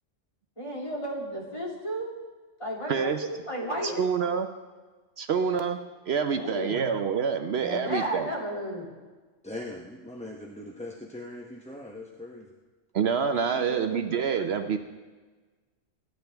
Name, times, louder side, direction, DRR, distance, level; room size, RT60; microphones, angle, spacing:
voice 1, 0.6-2.1 2.6-4.0 6.3-6.9 7.6-8.9 13.5-14.4, equal, 25° left, -3 dB, 2.7 m, -34 dB
voice 2, 2.9-3.3 3.8-4.5 5.2-5.8 6.1-8.3 12.9-14.8, right 6 dB, 65° right, 8 dB, 0.9 m, -27 dB
voice 3, 9.4-12.5, left 1 dB, 5° left, -1 dB, 0.8 m, -40 dB
24.0 x 10.5 x 3.5 m, 1.3 s
omnidirectional pair, 1.2 m